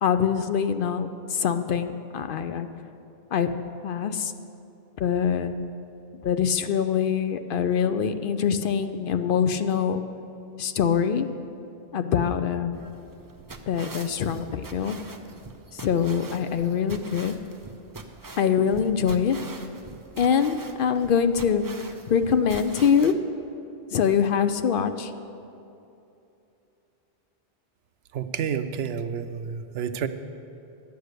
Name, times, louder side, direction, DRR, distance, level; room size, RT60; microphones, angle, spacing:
voice 1, 0.0-2.7 3.3-3.5 3.8-4.3 5.0-5.6 6.2-10.0 10.6-11.3 11.9-12.7 13.7-14.9 15.7-17.3 18.4-19.4 20.2-21.6 22.1-23.1 23.9-25.1, left 7 dB, 65° left, 9 dB, 0.7 m, -24 dB
sound 1, 12.7-23.1, right 3 dB, 25° right, 0.5 m, -44 dB
voice 2, 28.1-30.1, right 7 dB, 85° right, 10 dB, 0.9 m, -30 dB
11.5 x 8.0 x 6.6 m, 2.8 s
omnidirectional pair, 1.0 m